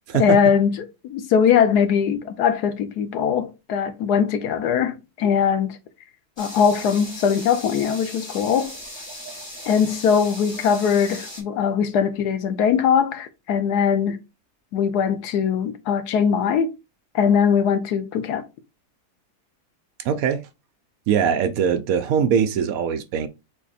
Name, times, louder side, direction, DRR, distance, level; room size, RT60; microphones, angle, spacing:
voice 1, 0.2-0.8 1.0-5.8 6.4-8.7 9.7-14.2 14.7-16.7 17.1-18.4, left 7 dB, 85° left, 1.3 m, -21 dB
sound 1, 6.4-11.4, equal, 20° left, 1.3 m, -38 dB
voice 2, 20.0-20.4 21.1-23.3, right 7 dB, 70° right, 1.0 m, -21 dB
4.2 x 2.9 x 4.1 m
omnidirectional pair, 1.7 m